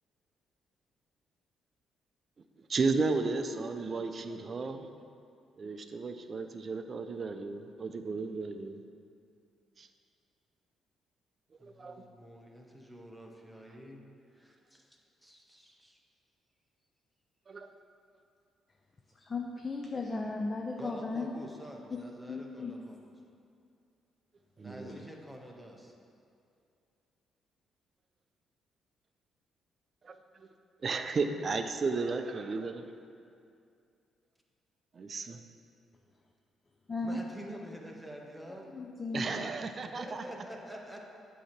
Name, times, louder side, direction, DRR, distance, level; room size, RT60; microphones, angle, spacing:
voice 1, 2.7-4.9 5.6-8.8 9.8-9.9 11.6-12.0 17.5-17.7 24.6-25.0 30.0-30.2 30.8-32.8 34.9-35.4 39.1-40.2, right 4 dB, 40° right, 8 dB, 0.4 m, -34 dB
voice 2, 11.6-14.1 14.3-16.0 20.8-23.1 24.6-25.9 37.0-38.7 39.2-39.5 39.8-41.0, equal, 5° right, 0 dB, 0.8 m, -48 dB
voice 3, 19.2-21.4 21.9-22.0 22.3-22.8 24.8-25.1 36.9-37.2 38.7-39.4, left 3 dB, 30° left, 1 dB, 0.4 m, -36 dB
8.2 x 2.8 x 5.8 m, 2.5 s
cardioid pair, 90°, 0 cm